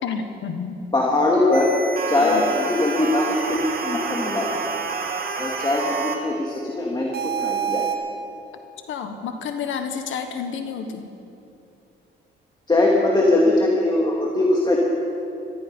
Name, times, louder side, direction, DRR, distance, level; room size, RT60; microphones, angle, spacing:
voice 1, 0.0-0.9 2.2-2.5 8.9-11.1, left 6 dB, 75° left, 7 dB, 1.4 m, -30 dB
voice 2, 0.9-1.7 2.1-4.5 5.4-7.9 12.7-14.8, left 2 dB, 20° left, -3 dB, 2.3 m, -21 dB
sound 1, 1.5-6.2 7.1-8.0, right 6 dB, 50° right, 2.2 m, -28 dB
17.5 x 14.0 x 5.5 m, 2.7 s
cardioid pair, 90°, 20 cm